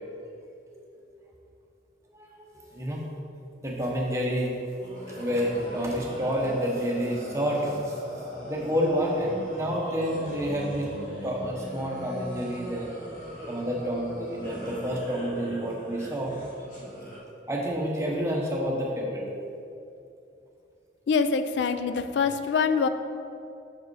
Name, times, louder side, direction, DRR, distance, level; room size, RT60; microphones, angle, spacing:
voice 1, 2.1-3.0 3.6-4.5 5.1-8.0 8.5-13.0 13.5-16.3 17.5-19.2, equal, 15° right, -2 dB, 0.9 m, -29 dB
sound 1, 4.8-17.2, equal, 45° left, 1.4 m, -40 dB
voice 2, 21.1-22.9, left 5 dB, 80° left, 10 dB, 0.3 m, -24 dB
6.3 x 4.7 x 4.7 m, 2.6 s
head